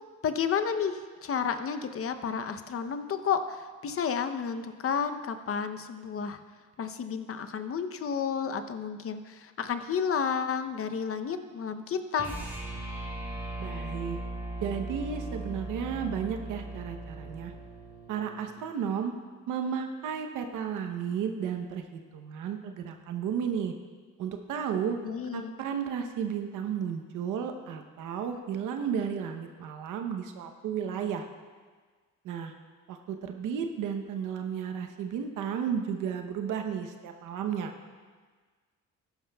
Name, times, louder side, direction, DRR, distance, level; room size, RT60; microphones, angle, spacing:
voice 1, 0.2-6.4 6.8-12.3 25.0-25.5, left 6 dB, 50° left, 9 dB, 0.7 m, -31 dB
sound 1, 12.1-18.5, right 2 dB, 5° right, 2.8 m, -38 dB
voice 2, 13.6-14.2 14.6-17.5 18.1-19.1 19.5-23.7 24.2-25.0 25.3-31.3 32.2-32.5 32.9-37.7, right 7 dB, 90° right, 5 dB, 0.9 m, -33 dB
14.0 x 11.5 x 2.3 m, 1.5 s
cardioid pair, 90°, 30 cm